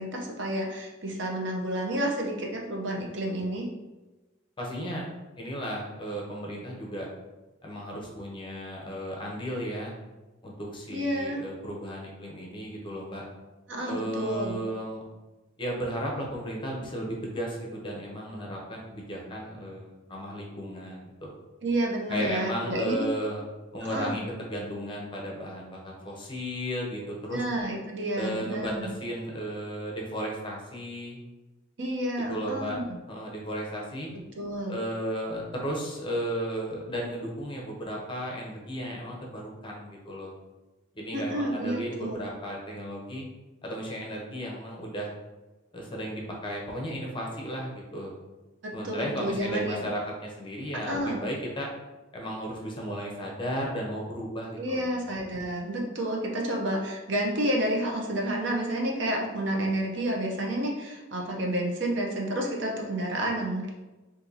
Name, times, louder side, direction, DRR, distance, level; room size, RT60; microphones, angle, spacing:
voice 1, 0.0-3.7 10.9-11.4 13.7-14.6 21.6-23.1 23.9-24.2 27.3-28.9 31.8-32.8 34.3-34.8 41.1-42.2 48.8-49.9 50.9-51.2 54.6-63.7, right 1 dB, 60° right, 0 dB, 0.6 m, -30 dB
voice 2, 4.6-5.1 5.4-7.1 7.6-9.9 10.4-13.3 13.8-15.0 15.6-21.3 22.1-23.4 23.7-25.8 26.0-27.4 28.2-31.2 32.3-32.8 33.1-34.1 34.7-40.3 41.0-43.3 43.6-45.1 45.7-48.1 48.7-51.7 52.1-54.9, equal, 25° left, -2 dB, 0.6 m, -34 dB
2.7 x 2.6 x 3.8 m, 1.1 s
head